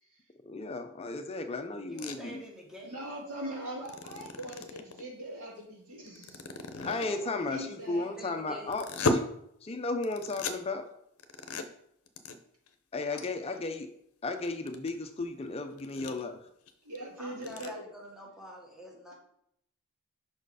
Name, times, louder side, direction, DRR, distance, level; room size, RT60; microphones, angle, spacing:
voice 1, 0.4-2.4 6.8-9.2 9.6-10.9 12.9-13.9 14.2-16.4, left 3 dB, 25° left, 6 dB, 0.4 m, -34 dB
voice 2, 1.8-3.0 6.8-8.8 13.1-13.5 17.2-19.1, equal, 5° right, -2 dB, 1.1 m, -47 dB
sound 1, 2.0-2.2 3.8-5.0 6.1-7.2 8.7-9.2 10.0-10.6 11.2-11.6 12.1-12.3 12.7-12.8 13.2-13.3 13.6-13.7 14.3-14.9 15.4-15.5 15.8-16.2 16.7-16.8 17.0-17.1 17.3-17.7, left 3 dB, 75° left, 0.6 m, -33 dB
voice 3, 2.8-6.4 7.0-8.1 16.8-17.7, right 1 dB, 80° right, -2 dB, 2.1 m, -41 dB
5.5 x 4.4 x 4.8 m, 0.73 s
head